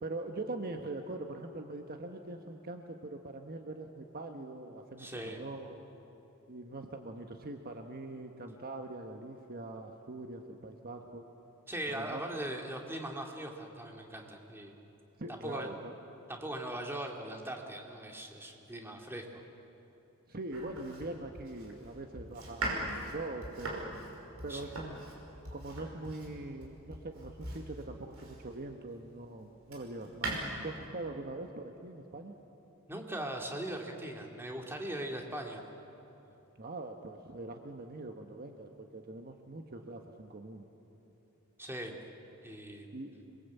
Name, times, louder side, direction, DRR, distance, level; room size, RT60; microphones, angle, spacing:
voice 1, 0.0-5.8 6.5-11.2 11.9-12.2 15.2-15.9 20.3-23.9 24.4-25.0 25.5-30.4 30.6-32.4 36.6-40.6 42.9-43.2, right 2 dB, 45° right, 4 dB, 1.3 m, -42 dB
voice 2, 5.0-5.4 11.7-14.7 15.3-15.7 16.3-19.2 24.5-24.6 32.9-35.6 41.6-42.0 42.4-42.9, right 1 dB, 10° right, 1 dB, 2.5 m, -40 dB
Domestic sounds home sounds, 20.5-28.7 29.2-30.4, right 2 dB, 75° right, 5.6 m, -41 dB
27.5 x 22.0 x 8.3 m, 2.9 s
head